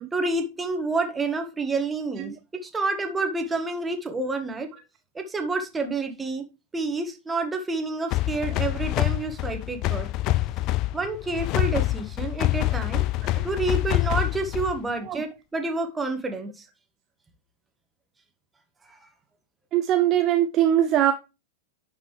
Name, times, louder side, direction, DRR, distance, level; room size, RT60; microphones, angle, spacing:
voice 1, 0.1-2.3 2.6-4.7 5.2-6.4 6.7-10.1 10.9-13.0 13.4-16.7 18.9-19.0, right 3 dB, 15° right, 1.8 m, -28 dB
sound 1, 8.1-14.9, left 17 dB, 40° left, 0.5 m, -26 dB
voice 2, 19.7-21.1, right 11 dB, 35° right, 0.7 m, -22 dB
11.0 x 5.4 x 3.3 m
figure-of-eight pair, 90°, 0 cm